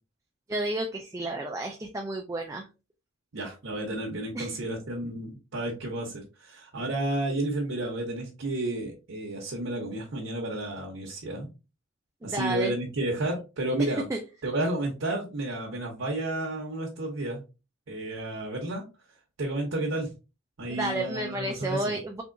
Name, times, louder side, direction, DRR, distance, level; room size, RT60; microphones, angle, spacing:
voice 1, 0.5-2.7 4.3-4.6 12.2-12.7 13.8-14.2 20.7-22.2, right 2 dB, 15° right, 2 dB, 0.3 m, -31 dB
voice 2, 3.3-11.5 12.2-14.0 14.4-17.4 17.9-18.9 19.4-20.1 20.6-22.0, right 1 dB, 80° right, -1 dB, 0.8 m, -31 dB
3.5 x 2.9 x 2.5 m, 0.30 s
head